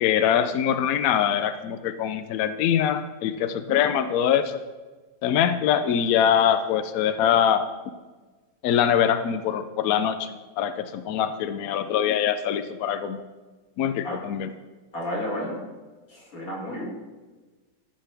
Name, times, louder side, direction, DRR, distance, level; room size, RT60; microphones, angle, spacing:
voice 1, 0.0-4.6 5.2-7.7 8.6-13.2 13.8-14.5, left 9 dB, 80° left, 10 dB, 0.7 m, -23 dB
voice 2, 14.9-15.6 16.1-16.9, equal, 45° left, -3 dB, 2.6 m, -31 dB
14.0 x 5.5 x 3.4 m, 1.3 s
omnidirectional pair, 2.1 m